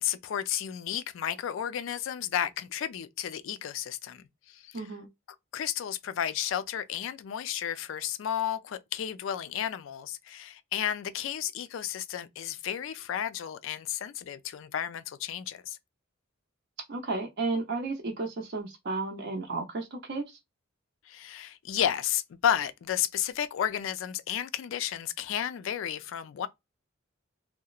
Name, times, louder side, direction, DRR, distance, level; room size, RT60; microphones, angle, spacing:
voice 1, 0.0-4.9 5.5-15.8 21.1-26.5, left 10 dB, 65° left, 0.3 m, -32 dB
voice 2, 4.7-5.1 16.9-20.4, right 3 dB, 55° right, 0.6 m, -33 dB
2.8 x 2.0 x 2.3 m
head